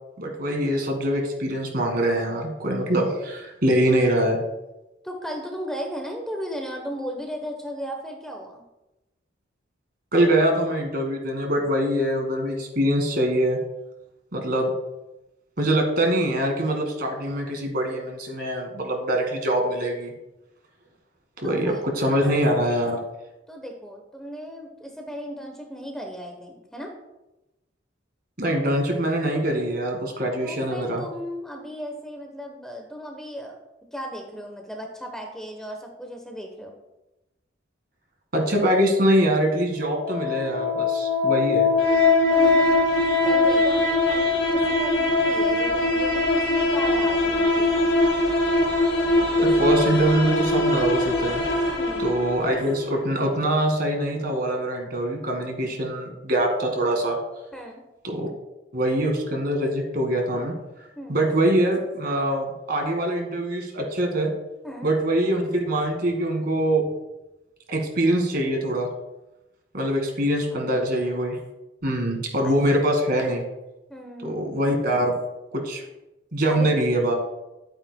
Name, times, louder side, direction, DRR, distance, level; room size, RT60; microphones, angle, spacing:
voice 1, 0.2-4.4 10.1-13.6 14.3-14.7 15.6-20.1 21.4-23.0 28.4-31.1 38.3-41.7 49.4-51.4 52.0-57.2 58.0-58.3 58.7-60.5 61.1-64.3 64.8-66.9 67.7-68.9 69.7-71.4 71.8-73.4 74.2-75.2 75.5-75.8 76.3-77.1, right 1 dB, 50° right, 3 dB, 1.8 m, -23 dB
voice 2, 5.0-8.6 21.4-22.3 23.5-26.9 30.4-33.6 33.9-36.7 42.3-47.9 51.8-52.1 57.5-57.8 61.0-61.2 64.6-64.9 70.5-70.7 72.4-72.5 73.9-74.6 76.5-76.9, equal, 5° left, 2 dB, 0.9 m, -36 dB
sound 1, 39.8-52.8, left 2 dB, 85° left, 2.5 m, -21 dB
11.5 x 8.8 x 2.2 m, 0.98 s
head